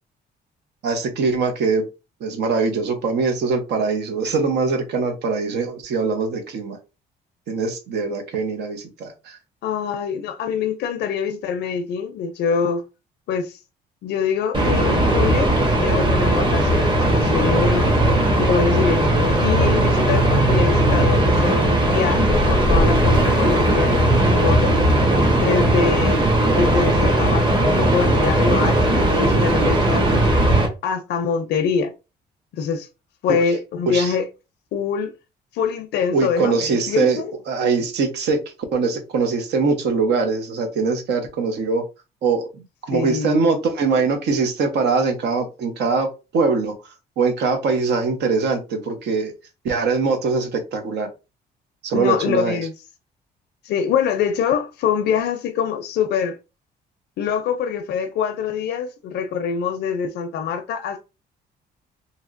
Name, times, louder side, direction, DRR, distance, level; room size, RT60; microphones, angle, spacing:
voice 1, 0.8-1.8 2.2-6.8 7.5-9.4 33.3-33.4 33.9-34.1 36.1-37.2 37.5-38.4 38.7-41.8 42.2-46.1 46.3-46.7 47.2-49.3 49.6-51.1 51.8-52.6, right 4 dB, 75° right, 0.8 m, -22 dB
voice 2, 9.6-12.8 13.3-13.6 14.0-17.9 18.4-24.7 25.4-27.5 27.8-30.2 30.8-31.9 32.5-32.9 33.2-34.3 34.7-35.1 35.5-37.3 42.9-43.4 51.9-52.7 53.6-56.4 57.2-61.0, left 6 dB, 75° left, 0.4 m, -24 dB
sound 1, 14.5-30.7, right 1 dB, 30° right, 1.1 m, -18 dB
2.9 x 2.8 x 2.5 m
cardioid pair, 105°, 17 cm